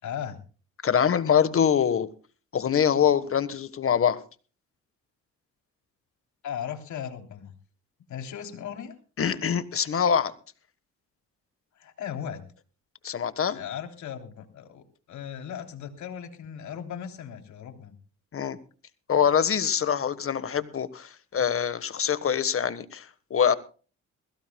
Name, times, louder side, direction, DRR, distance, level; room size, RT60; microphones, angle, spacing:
voice 1, 0.0-0.4 6.4-7.5 8.1-9.0 11.8-12.5 13.5-18.0, left 8 dB, 70° left, 3.5 m, -37 dB
voice 2, 0.8-2.1 2.5-4.2 9.2-10.3 13.0-13.6 18.3-18.6 19.1-23.0 23.3-23.5, left 8 dB, 45° left, 1.4 m, -24 dB
21.5 x 16.5 x 2.3 m
cardioid pair, 90°, 30 cm